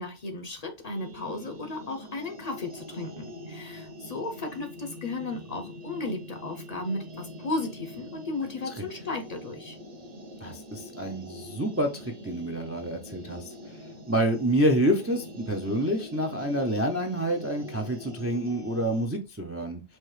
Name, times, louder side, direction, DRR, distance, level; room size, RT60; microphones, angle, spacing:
voice 1, 0.0-9.8, left 2 dB, 45° left, 0.7 m, -35 dB
sound 1, 0.8-19.1, left 1 dB, 40° right, 0.8 m, -44 dB
voice 2, 10.4-13.8 14.1-19.8, right 1 dB, 20° right, 0.4 m, -28 dB
4.4 x 2.8 x 3.1 m
omnidirectional pair, 1.1 m